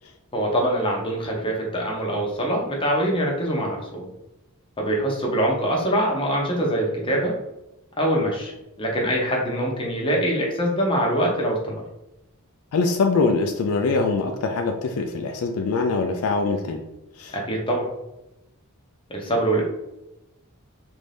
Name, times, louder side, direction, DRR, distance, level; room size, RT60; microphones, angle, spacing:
voice 1, 0.3-4.1 4.8-7.4 8.0-8.5 8.8-11.8 17.3-17.9 19.1-19.6, right 1 dB, 25° left, -1 dB, 0.8 m, -24 dB
voice 2, 12.7-16.8 17.2-17.4, left 4 dB, 70° left, 4 dB, 0.4 m, -23 dB
3.3 x 2.6 x 3.3 m, 0.93 s
head